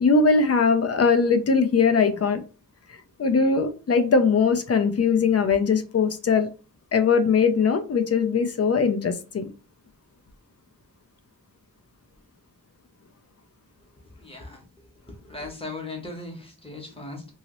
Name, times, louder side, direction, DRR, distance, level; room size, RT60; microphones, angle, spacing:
voice 1, 0.0-2.4 3.2-6.5 6.9-9.5, left 5 dB, 45° left, 0.4 m, -20 dB
voice 2, 14.1-14.6 15.0-17.3, left 2 dB, 15° left, 0.9 m, -38 dB
2.9 x 2.8 x 2.9 m
wide cardioid pair, 145°, 36 cm